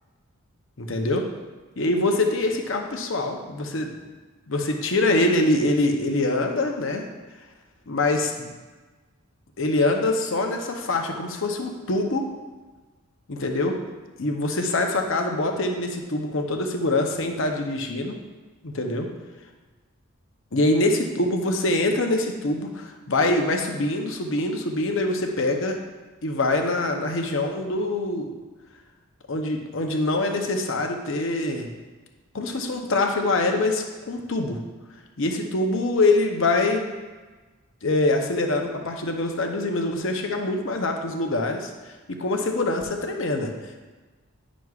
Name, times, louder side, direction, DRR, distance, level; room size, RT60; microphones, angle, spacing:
voice 1, 0.8-1.3 1.8-3.9 4.5-7.0 7.9-8.5 9.6-12.2 13.3-13.8 14.2-18.2 18.6-19.1 20.5-25.8 26.2-28.3 29.3-31.7 32.3-34.6 35.2-36.9 37.8-43.5, left 2 dB, 55° left, 3 dB, 0.7 m, -24 dB
9.3 x 6.1 x 2.4 m, 1.3 s
head